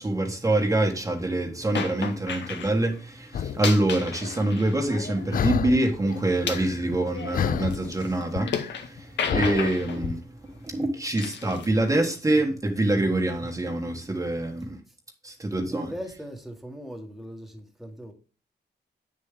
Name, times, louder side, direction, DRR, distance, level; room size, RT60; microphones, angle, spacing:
voice 1, 0.0-14.8 15.2-15.9, right 1 dB, 20° right, 1.3 m, -25 dB
sound 1, 1.8-2.7 3.5-5.5 5.8-8.9 9.2-10.0 11.2-11.7, left 6 dB, 85° left, 1.8 m, -34 dB
sound 2, 3.3-3.6 4.2-4.4 5.3-6.0 6.2-7.1 7.3-10.1, left 8 dB, 50° left, 0.4 m, -30 dB
voice 2, 15.7-18.1, equal, ahead, 1.4 m, -39 dB
9.5 x 6.7 x 3.7 m
wide cardioid pair, 170°, 18 cm